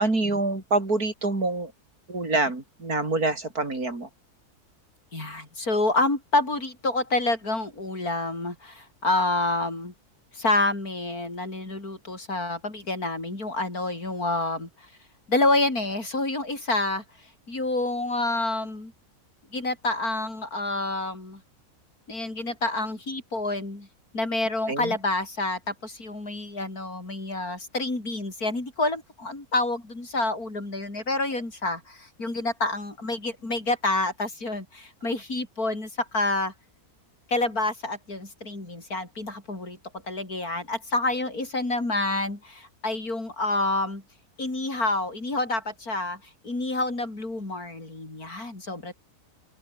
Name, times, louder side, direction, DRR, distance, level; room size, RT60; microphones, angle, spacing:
voice 1, 0.0-1.7 2.1-4.1 24.7-25.0, right 2 dB, 70° right, 5.8 m, -26 dB
voice 2, 5.1-9.9 10.3-14.7 15.3-17.0 17.5-18.9 19.5-21.4 22.1-23.9 24.1-36.5 37.3-39.8 40.1-44.0 44.4-46.2 46.4-48.9, left 2 dB, 70° left, 6.5 m, -28 dB
open air
omnidirectional pair, 1.6 m